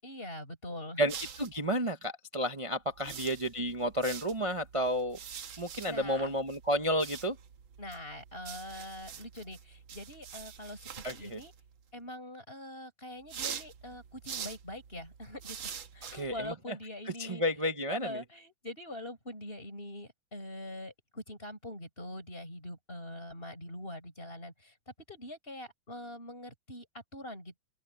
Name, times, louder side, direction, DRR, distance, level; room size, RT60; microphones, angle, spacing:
voice 1, 0.0-1.1 3.0-3.4 5.9-6.3 7.8-11.5 11.9-17.4 17.9-27.6, left 1 dB, 25° left, 7.7 m, -44 dB
voice 2, 1.0-5.2 5.6-7.4 11.0-11.4 16.1-16.8 17.2-18.2, equal, 55° right, 0.3 m, -31 dB
sound 1, 1.1-1.7 2.9-11.8 13.2-16.5, right 8 dB, 70° right, 2.1 m, -45 dB
open air
omnidirectional pair, 2.3 m